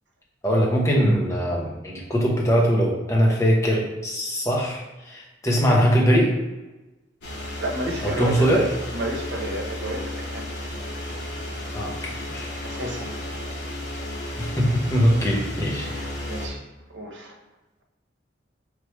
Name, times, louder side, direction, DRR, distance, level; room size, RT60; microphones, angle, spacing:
voice 1, 0.4-6.3 8.0-8.7 11.7-12.5 14.4-15.9, equal, 15° left, -3 dB, 0.8 m, -21 dB
sound 1, 7.2-16.5, left 1 dB, 65° left, 0.9 m, -33 dB
voice 2, 7.6-10.5 12.6-13.1 15.8-17.4, right 1 dB, 75° right, 1 dB, 0.8 m, -31 dB
4.6 x 3.3 x 3.2 m, 1.1 s
head